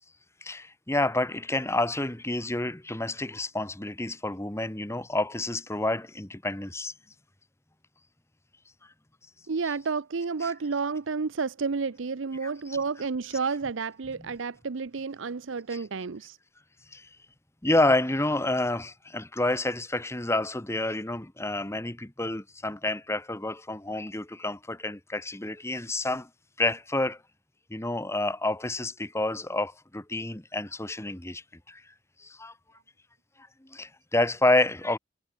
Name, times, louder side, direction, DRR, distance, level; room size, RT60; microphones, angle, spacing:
voice 1, 0.4-6.9 10.4-10.5 12.4-12.5 15.7-15.8 16.9-17.1 17.6-26.3 26.6-27.2 27.7-31.8 32.2-32.5 33.6-35.0, left 2 dB, 15° left, 1.4 m, -29 dB
voice 2, 9.5-16.4, right 4 dB, 70° right, 0.6 m, -31 dB
head